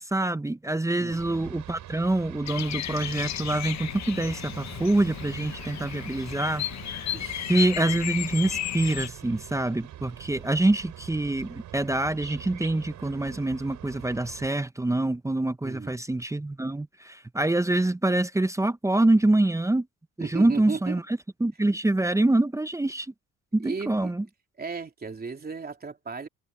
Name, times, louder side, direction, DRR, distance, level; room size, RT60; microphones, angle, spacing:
voice 1, 0.0-6.7 6.9-7.1 7.5-19.9 20.2-21.0 21.4-23.1 23.5-24.2, right 2 dB, 10° right, 0.8 m, -25 dB
sound 1, 1.1-14.5, right 12 dB, 80° right, 6.3 m, -44 dB
Bird vocalization bird call bird song, 2.4-9.1, left 12 dB, 65° left, 0.9 m, -34 dB
voice 2, 7.1-7.6 15.6-16.0 20.2-21.0 23.6-24.1 24.6-26.3, right 4 dB, 30° right, 3.3 m, -35 dB
cardioid pair, 90°, 30 cm